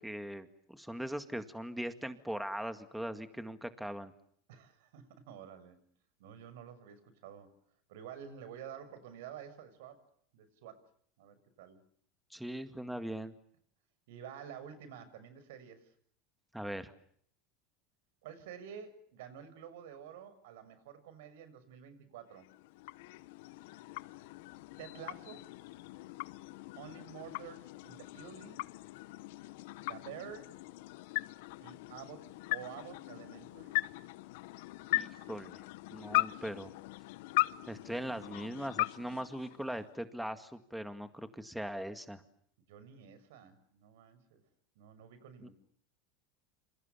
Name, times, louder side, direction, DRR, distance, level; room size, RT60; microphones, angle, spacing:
voice 1, 0.0-4.1 12.3-13.3 16.5-16.9 34.9-35.6 35.9-36.7 37.7-42.2 45.4-45.5, equal, ahead, 9 dB, 2.0 m, -40 dB
voice 2, 4.5-5.8 6.2-7.5 7.9-10.0 10.3-10.8 11.2-11.8 14.1-15.9 18.2-22.5 24.8-25.5 26.8-28.7 29.8-30.6 31.6-33.8 42.7-44.4 44.8-45.5, right 8 dB, 80° right, 13 dB, 6.8 m, -50 dB
sound 1, 22.3-40.1, left 20 dB, 75° left, 1.2 m, -39 dB
28.5 x 28.0 x 7.0 m, 0.64 s
supercardioid pair, 130°, 0 cm